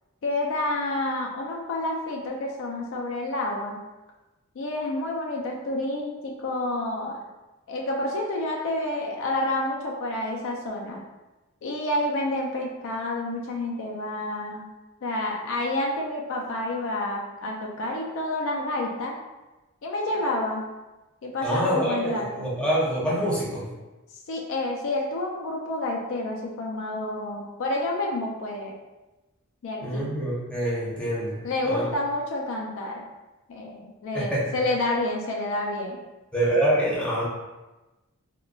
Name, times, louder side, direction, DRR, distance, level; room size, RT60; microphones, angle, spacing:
voice 1, 0.2-3.8 4.6-7.2 7.7-11.0 11.6-14.6 15.0-19.1 19.8-20.7 21.2-22.5 24.3-28.8 29.6-30.0 31.4-33.1 33.5-36.0, left 1 dB, 60° left, -1 dB, 0.4 m, -29 dB
voice 2, 21.4-23.7 29.8-31.8 34.1-34.4 36.3-37.2, right 1 dB, 5° left, -8 dB, 0.8 m, -26 dB
3.7 x 2.2 x 2.3 m, 1.1 s
head